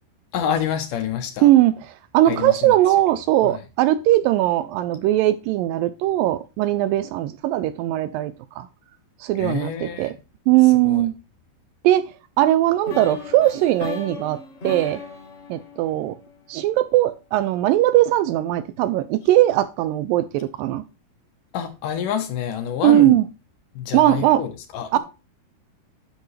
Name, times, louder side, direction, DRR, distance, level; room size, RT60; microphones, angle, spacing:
voice 1, 0.3-1.5 2.3-2.7 3.4-3.6 9.4-10.2 10.8-11.1 21.5-23.2 23.7-25.0, left 9 dB, 70° left, 2.3 m, -27 dB
voice 2, 1.4-1.7 2.1-8.7 9.2-10.1 10.5-11.1 11.8-12.1 12.4-14.4 14.6-15.0 15.5-16.2 16.5-20.8 22.8-23.2 23.9-24.4 24.9-25.0, right 14 dB, 80° right, 2.1 m, -19 dB
sound 1, 12.8-16.8, left 5 dB, 45° left, 0.8 m, -36 dB
10.5 x 6.8 x 3.2 m
omnidirectional pair, 4.3 m